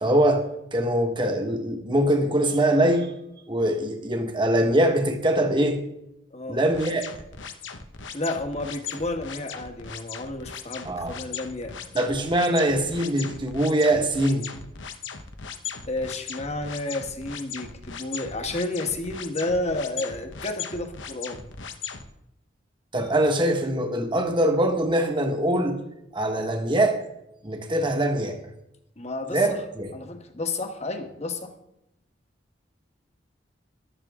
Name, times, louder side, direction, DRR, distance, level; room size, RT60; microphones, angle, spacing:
voice 1, 0.0-3.1 3.5-5.8 6.5-7.1 10.8-11.1 11.9-14.4 22.9-25.8 26.1-27.0 27.4-28.4 29.3-29.9, right 1 dB, 25° right, 4 dB, 1.6 m, -23 dB
sound 1, 6.7-22.0, left 6 dB, 85° left, 1.1 m, -38 dB
voice 2, 8.1-11.7 15.9-21.4 29.0-29.4 29.9-31.5, left 2 dB, 35° left, 6 dB, 1.5 m, -31 dB
14.5 x 12.0 x 3.7 m, 0.84 s
head